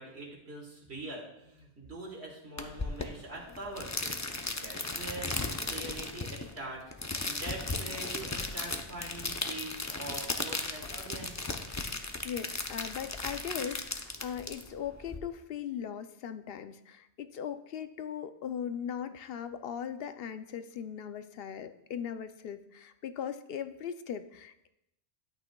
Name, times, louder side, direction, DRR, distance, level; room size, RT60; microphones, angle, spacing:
voice 1, 0.0-11.4, right 2 dB, 70° right, 0 dB, 1.9 m, -44 dB
sound 1, 2.6-15.2, left 3 dB, 25° left, 0.4 m, -36 dB
voice 2, 12.2-24.7, left 8 dB, 65° left, 10 dB, 0.8 m, -39 dB
12.5 x 8.3 x 2.3 m, 0.84 s
omnidirectional pair, 1.1 m